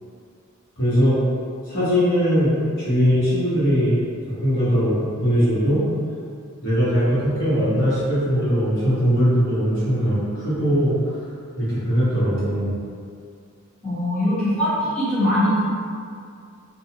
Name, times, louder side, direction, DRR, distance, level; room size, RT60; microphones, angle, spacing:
voice 1, 0.8-1.2 1.7-2.6 2.8-4.0 4.4-4.9 5.2-5.8 6.6-11.0 11.6-12.7, equal, 55° left, -13 dB, 1.1 m, -20 dB
voice 2, 13.8-15.6, equal, 5° left, -17 dB, 1.1 m, -21 dB
2.4 x 2.3 x 2.8 m, 2.3 s
head